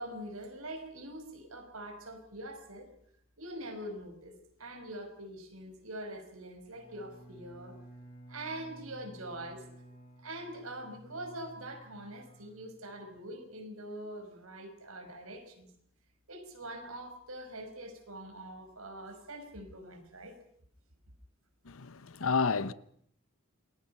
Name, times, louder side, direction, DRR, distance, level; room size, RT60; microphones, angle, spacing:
voice 1, 0.0-2.9 3.4-7.8 8.3-9.6 10.2-15.7 16.3-20.4, right 1 dB, 80° right, 5.2 m, -44 dB
Bowed string instrument, 6.7-13.3, right 1 dB, 30° left, 6.2 m, -54 dB
voice 2, 21.7-22.7, left 5 dB, 70° left, 0.9 m, -30 dB
28.5 x 21.0 x 5.7 m
head